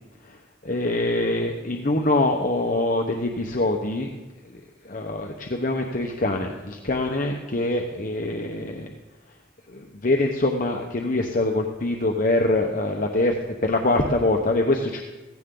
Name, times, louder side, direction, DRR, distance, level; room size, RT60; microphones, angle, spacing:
voice 1, 0.6-4.1 4.8-8.9 9.7-13.4 13.6-15.0, left 2 dB, 45° left, 2 dB, 1.0 m, -24 dB
16.5 x 15.5 x 3.9 m, 1.1 s
head